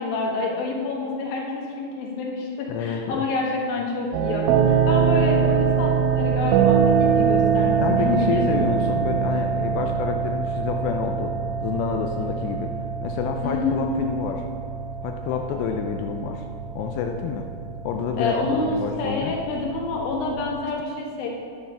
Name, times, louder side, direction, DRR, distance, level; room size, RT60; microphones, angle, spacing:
voice 1, 0.0-8.7 13.4-14.1 18.2-21.3, left 3 dB, 60° left, -1 dB, 2.7 m, -27 dB
voice 2, 2.7-3.3 7.8-11.3 11.6-12.7 13.0-14.5 15.0-16.4 16.8-17.5 17.8-18.4 18.6-19.3, left 7 dB, 85° left, 3 dB, 2.4 m, -28 dB
sound 1, 4.1-20.6, right 7 dB, 90° right, 3.1 m, -24 dB
9.5 x 9.4 x 5.5 m, 2.3 s
omnidirectional pair, 5.5 m